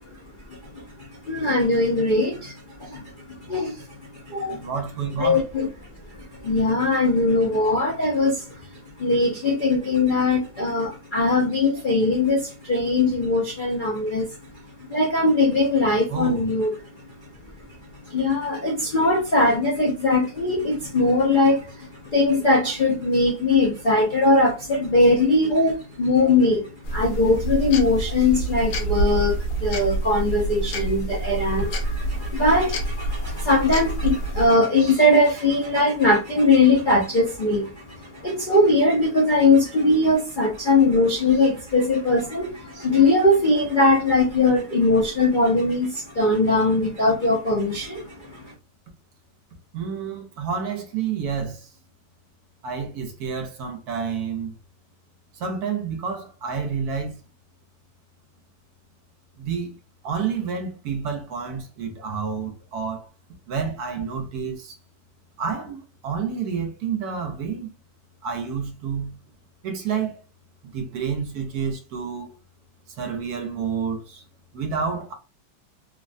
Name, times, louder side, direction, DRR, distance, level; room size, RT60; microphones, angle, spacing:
voice 1, 1.3-2.5 2.8-3.0 3.3-3.7 4.3-4.6 5.2-5.7 6.4-8.4 9.0-14.3 14.9-16.7 18.1-21.9 22.1-48.1 48.3-48.4, left 2 dB, 60° left, 0.5 m, -20 dB
voice 2, 4.5-5.4 16.1-16.4 49.7-51.6 52.6-54.5 55.4-57.2 59.4-59.7 60.0-63.1 63.5-64.7 65.4-67.7 68.2-69.1 69.6-70.2 70.7-72.3 73.0-74.2 74.5-75.1, right 6 dB, 70° right, 1.1 m, -29 dB
sound 1, 26.8-34.5, right 1 dB, 80° left, 1.3 m, -27 dB
3.2 x 2.2 x 2.5 m
omnidirectional pair, 1.9 m